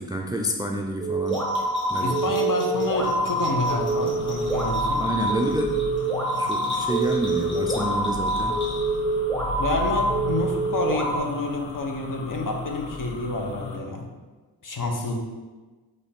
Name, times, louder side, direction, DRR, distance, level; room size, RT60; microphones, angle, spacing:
voice 1, 0.1-1.5 1.9-2.3 5.0-5.8 6.3-8.6, right 1 dB, 10° right, 2 dB, 0.3 m, -29 dB
sound 1, 1.0-11.2, right 2 dB, 5° left, 1.2 m, -26 dB
Bell, 1.2-9.1, left 1 dB, 25° left, 1.4 m, -42 dB
voice 2, 2.0-5.0 9.6-14.1 14.6-15.2, left 2 dB, 50° left, 2 dB, 0.8 m, -28 dB
sound 2, 2.7-13.8, left 3 dB, 85° left, 0.6 m, -36 dB
4.1 x 3.3 x 3.6 m, 1.3 s
cardioid pair, 60°, 42 cm